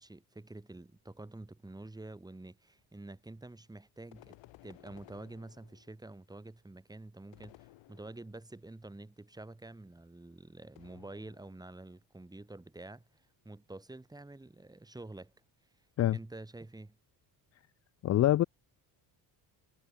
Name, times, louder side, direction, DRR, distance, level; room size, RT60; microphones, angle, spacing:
voice 1, 0.0-4.4 4.6-15.3 16.1-17.0, right 2 dB, 10° right, 7.2 m, -48 dB
sound 1, 4.1-6.1 7.3-8.5 10.7-11.7, left 17 dB, 85° left, 6.1 m, -58 dB
voice 2, 18.0-18.4, left 13 dB, 40° left, 0.4 m, -25 dB
cardioid pair, 150°, 43 cm